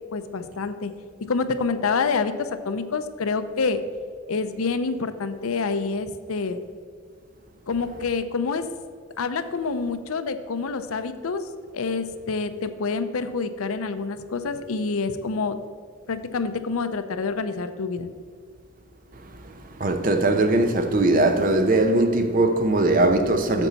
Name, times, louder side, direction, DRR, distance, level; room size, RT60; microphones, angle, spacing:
voice 1, 0.1-0.9 1.3-3.8 4.3-6.6 7.7-8.7 9.2-11.5 11.7-15.6 16.1-18.1, left 4 dB, 75° left, 0.6 m, -27 dB
voice 2, 19.1-23.7, right 2 dB, 40° right, 0.7 m, -21 dB
9.0 x 6.9 x 4.1 m
head